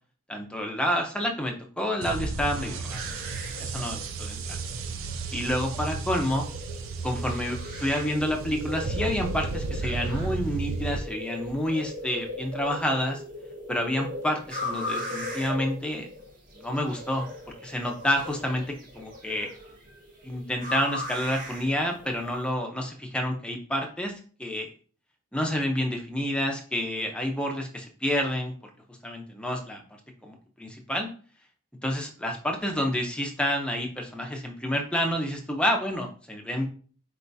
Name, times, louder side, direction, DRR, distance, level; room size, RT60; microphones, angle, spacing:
voice 1, 0.3-3.0 3.6-4.4 5.3-6.4 7.0-13.2 13.7-16.1 16.5-17.3 17.6-19.5 20.2-24.7 25.3-28.5 28.9-29.8 30.2-31.1 31.8-36.7, equal, 5° left, 1 dB, 0.6 m, -29 dB
sound 1, 2.0-11.0, right 4 dB, 70° right, 0.5 m, -33 dB
sound 2, 2.8-22.5, left 1 dB, 40° right, 1.5 m, -39 dB
4.8 x 3.4 x 2.7 m, 0.42 s
head